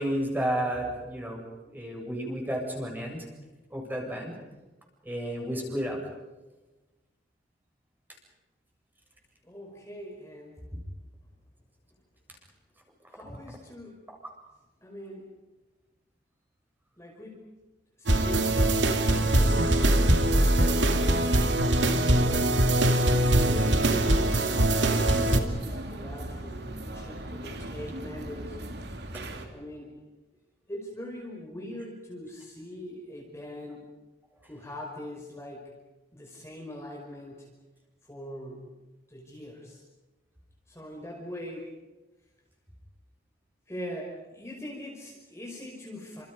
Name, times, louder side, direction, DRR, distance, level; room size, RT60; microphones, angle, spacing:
voice 1, 0.0-3.2 3.7-4.3 5.0-6.0 10.7-10.8, equal, 10° right, 0 dB, 7.6 m, -32 dB
voice 2, 9.4-10.6 13.1-14.0 14.8-15.3 17.0-17.5 18.0-19.6 20.3-21.3 22.1-22.5 23.3-28.6 29.3-29.9 30.7-33.8 34.5-35.7 36.1-37.5 38.1-38.7 39.1-39.8 40.7-41.7 43.7-46.2, equal, 15° left, -1 dB, 5.3 m, -42 dB
sound 1, 18.1-25.4, right 1 dB, 85° right, 2.6 m, -22 dB
sound 2, 18.3-29.5, right 1 dB, 65° right, 3.1 m, -39 dB
29.5 x 27.5 x 5.4 m, 1.1 s
head